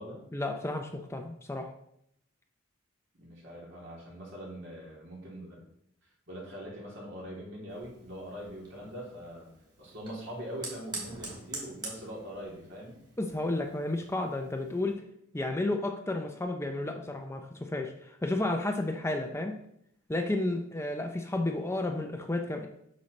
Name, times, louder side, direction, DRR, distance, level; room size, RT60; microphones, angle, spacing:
voice 1, 0.3-1.7 13.2-15.0 15.3-19.5 20.1-22.7, left 2 dB, 15° left, 4 dB, 0.5 m, -32 dB
voice 2, 3.1-5.6 6.3-9.5 9.8-13.0, equal, 65° right, -4 dB, 3.1 m, -42 dB
Fire, 7.7-14.9, right 2 dB, 20° right, 2.6 m, -46 dB
8.2 x 6.3 x 3.2 m, 0.73 s
head